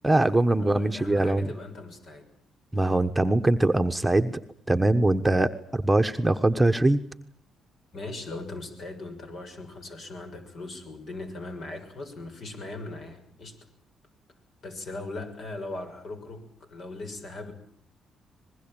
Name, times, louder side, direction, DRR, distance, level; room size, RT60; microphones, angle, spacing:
voice 1, 0.0-1.5 2.7-4.4 4.7-7.0, right 1 dB, 10° right, 6 dB, 1.2 m, -22 dB
voice 2, 0.6-2.3 7.9-13.6 14.6-17.5, left 2 dB, 60° left, 6 dB, 6.4 m, -39 dB
24.5 x 21.0 x 9.0 m, 0.63 s
cardioid pair, 90°, 0 cm